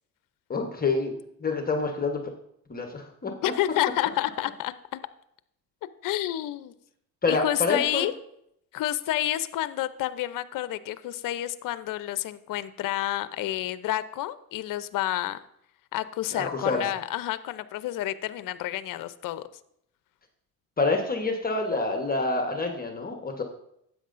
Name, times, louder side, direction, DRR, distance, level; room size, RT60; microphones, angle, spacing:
voice 1, 0.5-2.2 2.7-3.3 7.2-8.1 16.3-16.9 20.8-23.4, left 3 dB, 20° left, 4 dB, 1.1 m, -27 dB
voice 2, 3.4-5.0 6.0-6.7 7.3-8.1 8.7-15.4 15.9-19.4, left 14 dB, 50° left, 14 dB, 0.7 m, -29 dB
12.0 x 8.6 x 2.6 m, 0.74 s
supercardioid pair, 95°, 42 cm